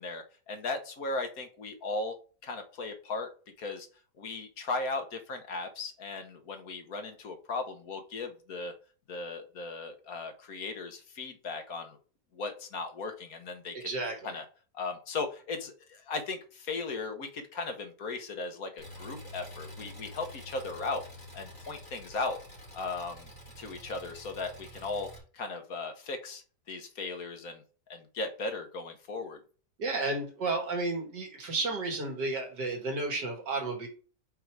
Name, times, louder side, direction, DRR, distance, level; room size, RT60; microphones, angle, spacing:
voice 1, 0.0-2.2 2.4-3.3 3.6-3.9 4.2-8.7 9.1-12.0 12.3-13.9 14.2-14.4 14.7-21.0 21.3-22.4 22.7-23.3 23.6-26.4 26.7-27.6 27.9-29.4, left 3 dB, 60° left, 5 dB, 1.5 m, -37 dB
voice 2, 13.8-14.3 29.8-33.9, right 2 dB, 85° right, 1 dB, 2.5 m, -32 dB
Engine, 18.8-25.2, equal, 10° left, 2.9 m, -48 dB
5.5 x 4.6 x 4.7 m, 0.37 s
omnidirectional pair, 1.8 m